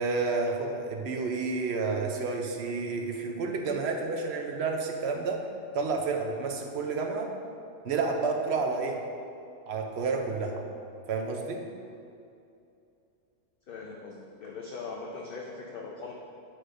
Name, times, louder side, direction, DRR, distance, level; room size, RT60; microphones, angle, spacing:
voice 1, 0.0-5.4 5.7-7.3 7.8-9.0 9.7-10.6 11.1-11.7, right 4 dB, 65° right, 2 dB, 0.7 m, -30 dB
voice 2, 13.7-16.1, left 4 dB, 60° left, -1 dB, 0.6 m, -40 dB
8.7 x 4.8 x 2.5 m, 2.6 s
omnidirectional pair, 1.4 m